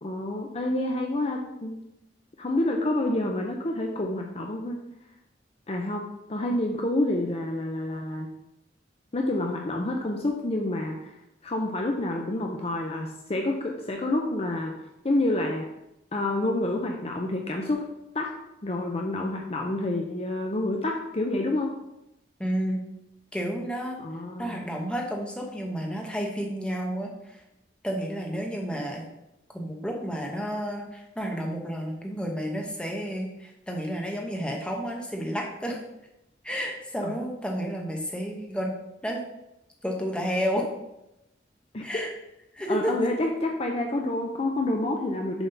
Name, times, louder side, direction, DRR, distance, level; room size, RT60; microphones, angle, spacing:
voice 1, 0.0-1.8 2.4-4.8 5.7-8.3 9.1-11.1 11.4-14.7 15.0-15.7 16.1-17.8 18.1-18.3 18.6-21.7 24.0-24.6 37.0-37.1 41.7-42.0 42.7-45.5, left 1 dB, 35° left, 2 dB, 0.6 m, -28 dB
voice 2, 22.4-22.8 23.3-24.0 24.4-27.4 27.8-29.0 29.5-35.8 36.4-38.7 39.0-39.2 39.8-40.7 41.8-42.1 42.5-42.9, equal, 5° left, 0 dB, 1.0 m, -31 dB
7.0 x 3.7 x 5.5 m, 0.89 s
head